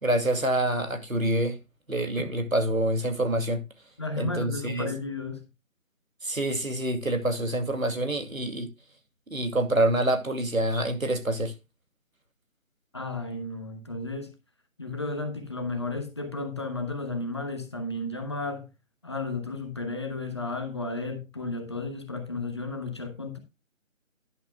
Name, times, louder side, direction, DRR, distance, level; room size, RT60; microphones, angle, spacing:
voice 1, 0.0-1.6 1.9-3.6 4.2-4.9 6.2-8.7 9.3-11.5, right 1 dB, 85° right, 2.5 m, -26 dB
voice 2, 4.0-5.4 12.9-14.3 14.8-18.7 19.0-23.4, left 2 dB, 20° left, 1.0 m, -33 dB
11.0 x 10.5 x 2.3 m
figure-of-eight pair, 160°, 40 cm